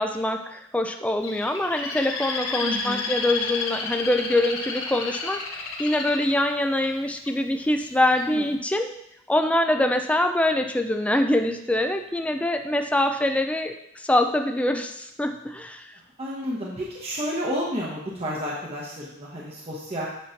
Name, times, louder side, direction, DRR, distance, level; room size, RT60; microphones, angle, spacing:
voice 1, 0.0-8.9 9.3-15.9, left 1 dB, 5° left, 5 dB, 0.4 m, -24 dB
Bird, 1.2-7.3 7.8-8.2, left 4 dB, 90° left, 1.1 m, -31 dB
voice 2, 2.6-3.1 8.3-8.5 16.2-20.1, equal, 30° right, -5 dB, 1.0 m, -31 dB
8.2 x 3.1 x 5.7 m, 0.78 s
head